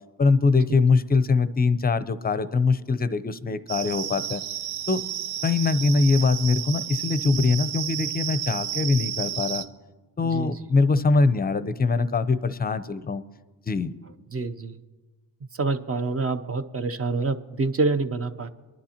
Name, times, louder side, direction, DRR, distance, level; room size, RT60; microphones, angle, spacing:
voice 1, 0.2-4.4 4.9-5.0 5.4-9.6 10.2-13.2 13.7-13.9, left 4 dB, 20° left, 13 dB, 0.6 m, -22 dB
sound 1, 3.7-9.7, right 10 dB, 80° right, 0.8 m, -32 dB
voice 2, 14.3-14.8 15.6-18.5, right 3 dB, 30° right, 10 dB, 0.7 m, -26 dB
23.0 x 10.5 x 2.9 m, 1.3 s
cardioid pair, 80°, 47 cm